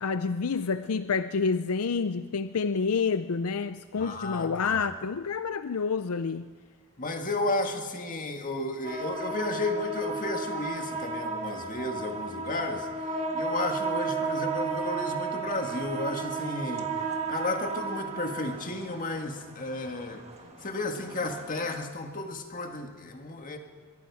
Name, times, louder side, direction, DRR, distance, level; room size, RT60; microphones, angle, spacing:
voice 1, 0.0-6.5, left 5 dB, 75° left, 0.5 m, -28 dB
voice 2, 4.0-4.8 7.0-12.9 13.3-16.9 17.3-20.2 20.6-23.6, left 2 dB, 35° left, 1.9 m, -33 dB
sound 1, 8.8-21.8, right 4 dB, 30° right, 1.8 m, -34 dB
24.0 x 22.5 x 4.9 m
head